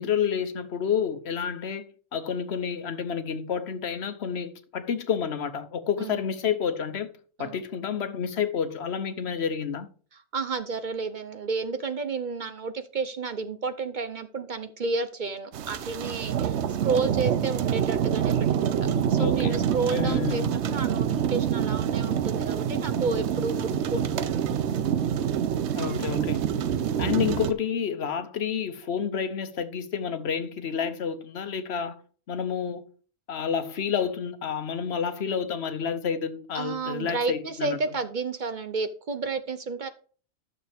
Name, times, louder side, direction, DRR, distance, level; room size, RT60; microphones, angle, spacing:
voice 1, 0.0-1.8 2.1-7.1 7.4-9.9 19.1-19.6 19.9-20.5 25.7-26.5 27.0-32.0 32.3-32.9 33.3-37.8, left 7 dB, 70° left, 1.1 m, -29 dB
voice 2, 10.1-18.3 18.6-24.4 26.7-27.0 36.5-39.9, right 4 dB, 50° right, 0.8 m, -31 dB
sound 1, 15.5-27.5, right 9 dB, 75° right, 0.9 m, -26 dB
sound 2, 18.6-27.3, right 1 dB, 25° right, 0.9 m, -40 dB
11.5 x 6.6 x 3.5 m
omnidirectional pair, 1.2 m